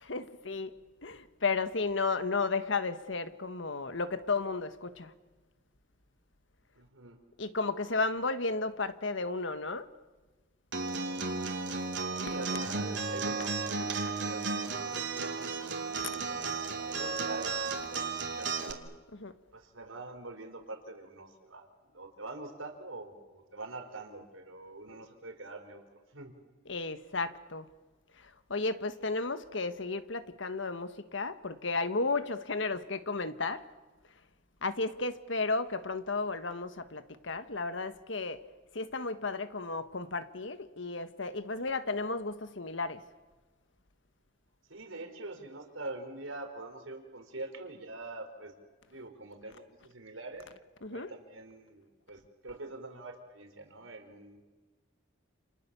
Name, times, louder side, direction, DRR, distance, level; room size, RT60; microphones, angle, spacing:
voice 1, 0.0-0.7 1.0-5.1 7.4-9.9 13.4-13.5 16.0-16.1 19.2-19.3 26.7-27.7 28.2-33.6 34.6-38.4 38.7-43.0 50.8-51.1, left 3 dB, 70° left, 1.5 m, -33 dB
voice 2, 6.8-7.2 12.2-18.8 19.5-25.8 26.1-26.3 44.7-48.5 48.9-50.5 50.9-54.4, right 2 dB, 85° right, 4.5 m, -45 dB
Acoustic guitar, 10.7-18.7, right 4 dB, 60° right, 3.0 m, -34 dB
29.5 x 29.0 x 7.0 m
head